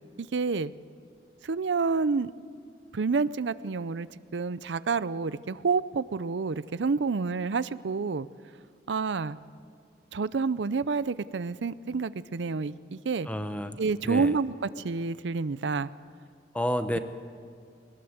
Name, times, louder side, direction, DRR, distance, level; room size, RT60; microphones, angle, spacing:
voice 1, 0.2-0.7 1.4-2.3 2.9-8.3 8.9-9.4 10.1-13.3 13.8-15.9, right 4 dB, 85° right, 16 dB, 0.5 m, -29 dB
voice 2, 13.3-14.3 16.5-17.0, equal, 10° left, 9 dB, 0.9 m, -30 dB
21.0 x 20.0 x 8.1 m, 2.3 s
head